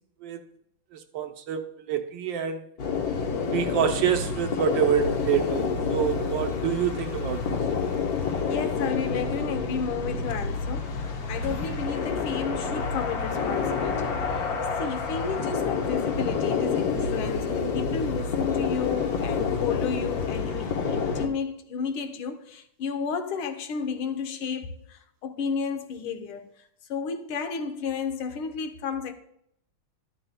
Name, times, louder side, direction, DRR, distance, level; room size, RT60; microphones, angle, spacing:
voice 1, 0.9-2.7 3.5-7.6, right 8 dB, 70° right, 1.4 m, -27 dB
sound 1, 2.8-21.3, left 5 dB, 55° left, 1.3 m, -28 dB
voice 2, 8.5-14.5 14.8-26.5 26.9-29.1, left 6 dB, 85° left, 1.8 m, -32 dB
sound 2, 11.4-13.4, right 1 dB, 20° left, 1.1 m, -41 dB
13.0 x 12.0 x 2.2 m
omnidirectional pair, 2.2 m